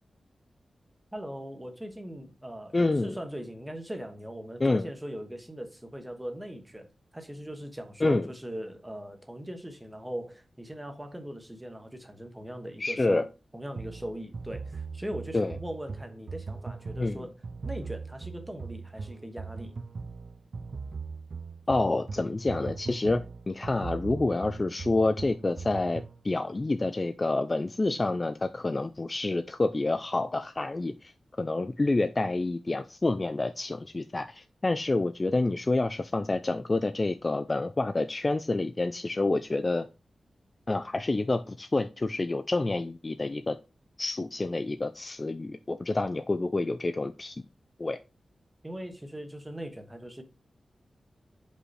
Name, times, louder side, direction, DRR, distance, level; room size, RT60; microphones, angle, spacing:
voice 1, 1.1-6.9 7.1-13.3 13.5-17.3 17.6-19.7 48.6-50.2, equal, 10° right, 1.1 m, -40 dB
voice 2, 2.7-3.2 4.6-4.9 8.0-8.3 12.8-13.3 15.3-15.6 17.0-17.2 21.7-39.9 40.7-43.6 44.0-47.4 47.8-48.0, left 2 dB, 25° left, 0.3 m, -28 dB
sound 1, 13.8-26.2, right 4 dB, 50° right, 0.4 m, -40 dB
5.4 x 4.7 x 4.2 m
wide cardioid pair, 160°, 0 cm